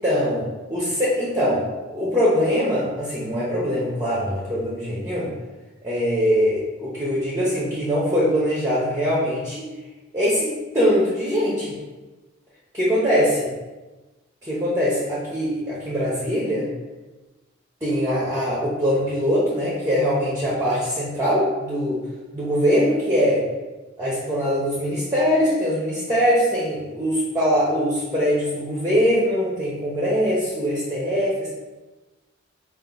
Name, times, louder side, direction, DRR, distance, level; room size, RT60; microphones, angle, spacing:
voice 1, 0.0-5.3 5.8-9.7 10.1-11.7 12.7-13.5 14.4-16.7 17.8-22.0 22.3-23.4 24.0-31.5, equal, 15° right, -6 dB, 0.9 m, -22 dB
5.2 x 2.6 x 3.9 m, 1.2 s
head